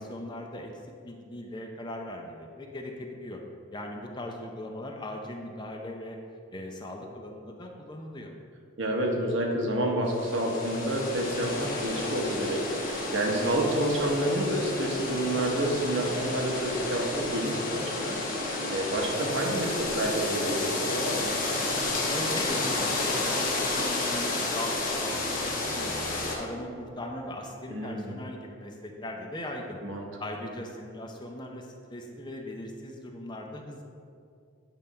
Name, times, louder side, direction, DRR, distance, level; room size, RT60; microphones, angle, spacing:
voice 1, 0.0-3.4 3.7-6.2 6.5-8.3 21.9-29.8 30.2-33.8, left 1 dB, 20° left, 2 dB, 0.5 m, -39 dB
voice 2, 8.8-18.2 18.4-21.2 27.7-28.2 29.8-30.1, right 1 dB, 65° right, 0 dB, 1.1 m, -29 dB
sound 1, 10.1-26.3, left 2 dB, 40° left, 1.1 m, -31 dB
sound 2, 20.5-26.4, right 1 dB, 45° right, 0.6 m, -43 dB
9.0 x 3.5 x 5.5 m, 2.4 s
head